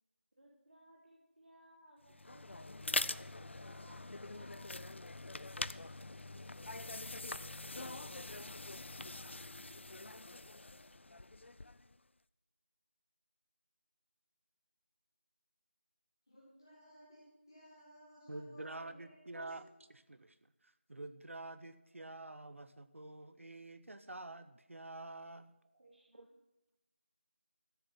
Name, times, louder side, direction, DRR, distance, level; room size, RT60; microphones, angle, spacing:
voice 1, 0.4-5.1 25.7-26.3, equal, 45° right, -2 dB, 1.6 m, -63 dB
sound 1, 2.1-11.9, left 2 dB, 65° left, 0.4 m, -43 dB
voice 2, 16.3-19.5, equal, 20° left, -8 dB, 1.6 m, -59 dB
voice 3, 18.3-19.6 19.9-20.4 20.6-25.5 26.1-26.3, right 2 dB, 85° right, 12 dB, 0.7 m, -48 dB
13.5 x 6.7 x 5.8 m, 0.98 s
figure-of-eight pair, 180°, 7 cm